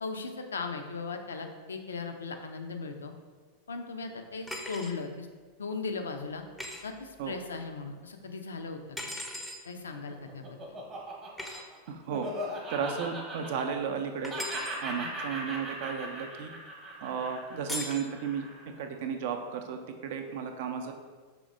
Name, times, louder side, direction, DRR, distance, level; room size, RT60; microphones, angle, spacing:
voice 1, 0.0-3.1 3.7-5.3 5.6-6.4 6.8-9.2 9.6-10.6 14.9-15.1, left 4 dB, 70° left, 5 dB, 0.4 m, -38 dB
sound 1, 4.5-5.0 6.6-6.8 9.0-9.6 11.4-11.6 14.2-14.8 17.7-18.0, left 1 dB, 5° left, 0.5 m, -38 dB
Laughter, 9.8-14.0 14.3-18.7, right 1 dB, 30° right, 0.9 m, -39 dB
voice 2, 11.9-12.3 12.7-14.3 14.8-16.5 17.0-18.5 18.8-20.9, right 6 dB, 50° right, 6 dB, 0.4 m, -34 dB
4.9 x 3.2 x 2.5 m, 1.5 s
figure-of-eight pair, 90°, 0 cm